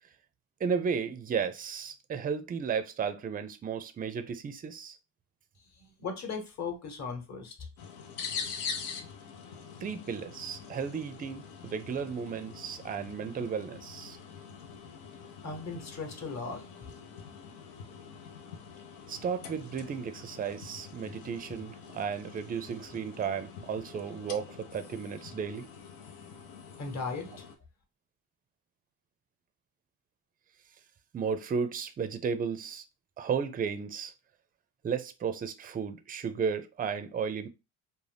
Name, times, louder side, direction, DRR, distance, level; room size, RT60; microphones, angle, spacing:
voice 1, 0.6-5.0 9.8-14.2 19.1-25.7 31.1-32.8 33.2-34.1 34.8-37.5, right 6 dB, 20° right, 0.4 m, -34 dB
voice 2, 5.8-7.5 15.4-16.8 26.8-27.4, left 4 dB, 40° left, 1.1 m, -37 dB
sound 1, 7.8-27.6, left 6 dB, 80° left, 0.7 m, -45 dB
2.5 x 2.1 x 3.3 m
supercardioid pair, 80°, 41 cm